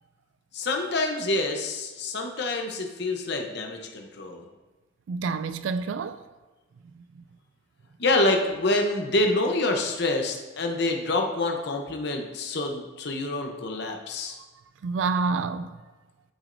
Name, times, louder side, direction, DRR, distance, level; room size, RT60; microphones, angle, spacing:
voice 1, 0.5-4.5 8.0-14.4, left 2 dB, 55° left, 0.8 m, -27 dB
voice 2, 5.1-6.2 6.9-7.2 14.8-15.7, right 4 dB, 70° right, 0.3 m, -28 dB
12.5 x 6.1 x 2.6 m
head